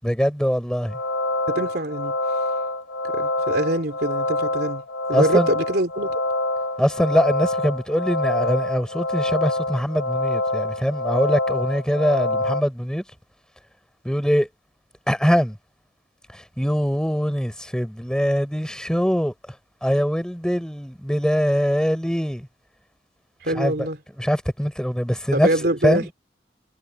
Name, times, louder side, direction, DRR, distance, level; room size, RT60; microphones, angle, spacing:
voice 1, 0.0-1.0 5.1-5.5 6.8-13.0 14.0-14.5 15.1-15.6 16.3-19.3 19.8-22.5 23.5-23.7 24.2-25.5 25.8-26.1, equal, 5° left, 6.2 m, -22 dB
sound 1, 0.8-12.6, left 2 dB, 80° left, 1.4 m, -26 dB
voice 2, 1.5-2.1 3.1-4.8 5.1-6.2 23.4-24.0 25.3-26.1, right 1 dB, 60° right, 3.3 m, -24 dB
head